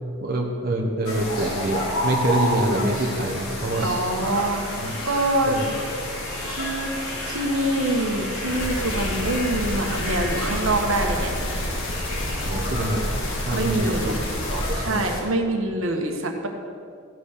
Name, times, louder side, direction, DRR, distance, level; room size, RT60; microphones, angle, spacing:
voice 1, 0.2-3.9 4.8-4.9 5.5-5.7 12.5-13.0 13.5-15.0, right 1 dB, 45° right, -1 dB, 1.0 m, -26 dB
sound 1, 1.0-15.2, left 1 dB, 75° left, 2.8 m, -30 dB
voice 2, 3.8-4.6 5.0-5.6 6.5-6.9 7.3-11.3 13.5-14.2 14.8-16.5, right 1 dB, 70° right, 3 dB, 1.3 m, -25 dB
sound 2, 8.5-14.8, left 1 dB, 60° left, 1.6 m, -29 dB
15.5 x 6.2 x 6.5 m, 2.3 s
head